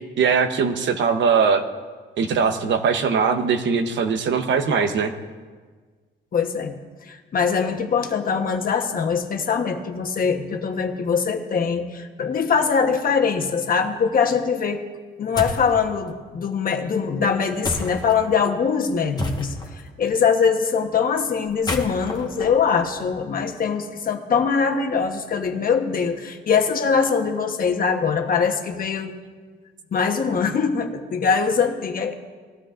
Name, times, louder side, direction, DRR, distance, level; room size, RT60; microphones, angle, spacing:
voice 1, 0.2-1.6 2.2-5.1, right 5 dB, 65° right, 7 dB, 1.0 m, -20 dB
voice 2, 6.3-6.7 7.0-14.8 15.2-29.1 29.9-32.1, left 6 dB, 45° left, 5 dB, 1.1 m, -22 dB
sound 1, 15.4-15.7 17.6-18.2 19.2-19.8 21.5-23.4, left 2 dB, 20° left, 1.4 m, -30 dB
19.5 x 13.0 x 2.6 m, 1.5 s
cardioid pair, 110°, 21 cm